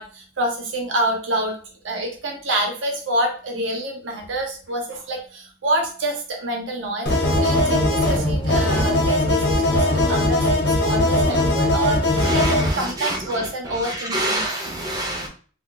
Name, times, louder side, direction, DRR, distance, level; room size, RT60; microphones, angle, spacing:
voice 1, 0.0-1.6 1.8-14.4, right 1 dB, 90° right, 0.7 m, -27 dB
sound 1, 7.1-12.7, left 1 dB, 60° left, 0.8 m, -19 dB
voice 2, 12.2-13.5 13.8-15.3, right 1 dB, 20° right, 0.5 m, -27 dB
2.2 x 2.1 x 3.7 m
head